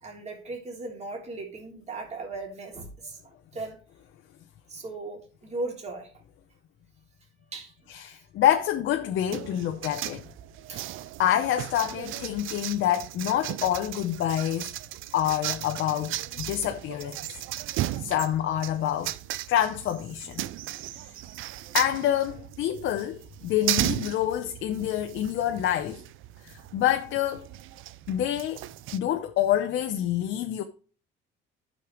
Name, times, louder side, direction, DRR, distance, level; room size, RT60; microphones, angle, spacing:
voice 1, 0.0-3.8 4.7-6.1 7.5-7.9 10.7-10.9, right 2 dB, 30° right, 3.0 m, -37 dB
voice 2, 7.9-10.2 11.2-14.7 15.1-17.2 18.0-19.1 19.5-20.4 21.0-21.1 21.7-26.0 26.4-27.5 28.1-28.6 28.9-30.6, left 11 dB, 65° left, 0.9 m, -27 dB
sound 1, 9.3-29.0, right 14 dB, 70° right, 0.5 m, -36 dB
12.0 x 6.7 x 3.2 m
cardioid pair, 130°, 21 cm